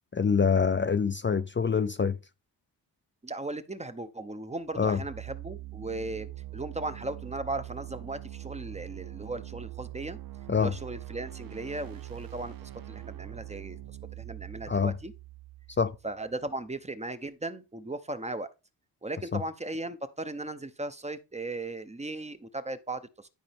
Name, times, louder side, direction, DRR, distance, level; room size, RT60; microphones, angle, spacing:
voice 1, 0.1-2.2 4.8-5.0 10.5-10.7 14.7-14.9 15.8-15.9 19.3-19.4, left 6 dB, 30° left, 0.5 m, -25 dB
voice 2, 3.2-10.2 10.6-13.8 14.1-15.1 16.0-18.5 19.0-23.3, right 2 dB, 15° right, 0.8 m, -37 dB
sound 1, 4.7-16.5, right 15 dB, 60° right, 0.6 m, -43 dB
11.5 x 5.3 x 3.5 m
wide cardioid pair, 100°, 39 cm